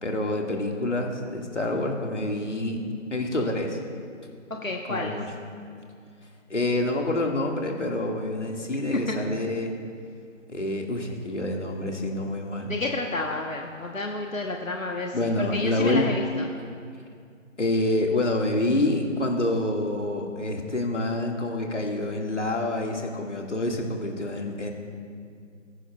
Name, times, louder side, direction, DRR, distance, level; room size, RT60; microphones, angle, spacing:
voice 1, 0.0-2.8 3.1-3.8 4.9-5.2 6.5-9.7 10.5-12.7 15.1-16.1 17.6-24.7, left 1 dB, 65° left, 1 dB, 2.0 m, -27 dB
voice 2, 4.6-5.2 8.9-9.2 12.7-16.5, left 2 dB, 85° left, 1 dB, 1.2 m, -30 dB
20.5 x 10.0 x 2.3 m, 2.3 s
figure-of-eight pair, 160°, 39 cm